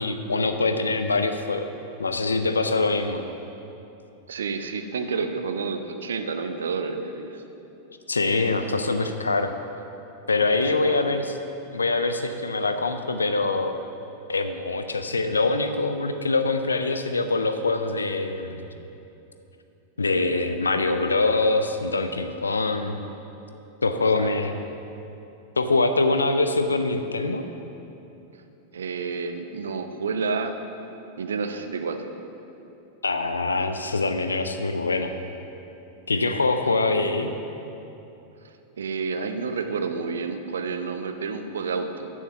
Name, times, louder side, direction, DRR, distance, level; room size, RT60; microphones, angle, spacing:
voice 1, 0.0-1.7 2.0-3.2 8.1-9.5 10.3-11.2 11.7-13.7 14.3-18.7 20.0-23.0 23.8-24.6 25.6-27.4 33.0-35.1 36.1-37.3, left 3 dB, 75° left, 8 dB, 0.4 m, -24 dB
voice 2, 4.3-7.4 8.5-8.9 10.5-11.0 24.2-24.3 28.7-30.6 31.2-32.1 36.6-37.1 38.4-42.1, right 5 dB, 65° right, 8 dB, 0.6 m, -30 dB
6.8 x 6.3 x 6.9 m, 2.9 s
figure-of-eight pair, 90°, 0 cm